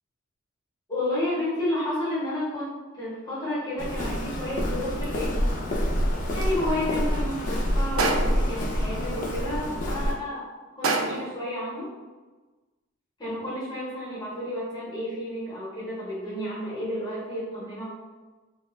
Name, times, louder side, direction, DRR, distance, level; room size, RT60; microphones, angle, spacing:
voice 1, 0.9-5.3 6.3-10.5 10.7-11.9 13.2-17.8, left 1 dB, 20° left, -9 dB, 0.8 m, -31 dB
Walk footsteps, 3.8-10.1, equal, 40° left, 0.4 m, -27 dB
sound 1, 8.0-8.6 10.8-11.4, right 3 dB, 75° right, 0.3 m, -26 dB
2.3 x 2.1 x 3.0 m, 1.3 s
head